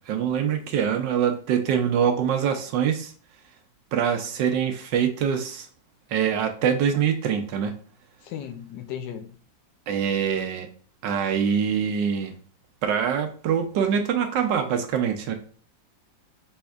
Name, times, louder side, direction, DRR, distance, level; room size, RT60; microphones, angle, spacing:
voice 1, 0.0-3.1 3.9-5.7 6.1-7.7 9.9-10.7 11.0-12.3 12.8-15.3, right 8 dB, 75° right, 6 dB, 1.3 m, -24 dB
voice 2, 8.2-9.3, left 9 dB, 75° left, 6 dB, 1.2 m, -36 dB
5.2 x 4.2 x 2.3 m, 0.43 s
omnidirectional pair, 2.1 m